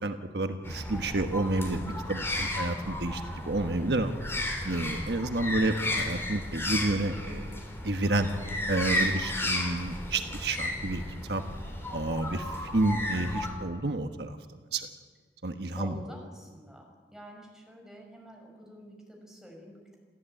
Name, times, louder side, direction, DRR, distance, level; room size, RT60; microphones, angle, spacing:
voice 1, 0.0-8.3 8.7-11.0 11.3-11.4 11.9-14.4 14.7-14.9 15.4-15.9, right 2 dB, 70° right, 6 dB, 1.3 m, -30 dB
sound 1, 0.6-13.5, left 1 dB, 15° left, 4.5 m, -34 dB
voice 2, 15.8-20.0, equal, 5° right, 1 dB, 5.6 m, -48 dB
29.0 x 14.5 x 9.1 m, 1.5 s
head